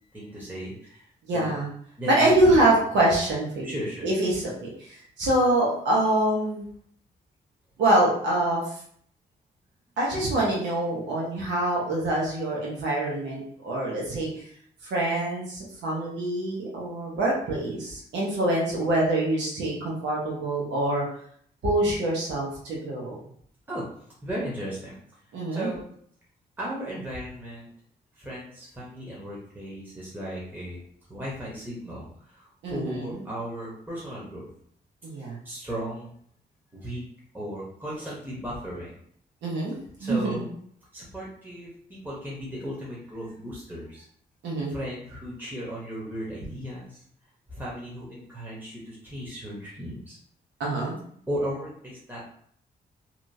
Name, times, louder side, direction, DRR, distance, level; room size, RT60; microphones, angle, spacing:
voice 1, 0.1-1.1 1.3-1.5 2.0-2.5 3.6-4.3 23.7-23.9 24.2-25.0 25.5-25.9 26.6-27.7 28.2-30.8 31.1-34.5 35.4-36.2 36.7-37.0 37.3-39.0 40.0-40.5 40.9-44.0 44.7-47.0 47.5-50.2 51.3-52.2, equal, 10° right, -6 dB, 1.0 m, -36 dB
voice 2, 1.3-1.7 2.1-6.7 7.8-8.7 10.0-14.4 14.9-21.0 21.6-23.2 25.3-25.7 32.6-33.3 35.0-35.4 39.4-39.7 40.0-40.4 44.4-44.7 50.6-51.0, right 1 dB, 85° right, -3 dB, 1.0 m, -25 dB
2.9 x 2.5 x 2.6 m, 0.63 s
cardioid pair, 55°, 18 cm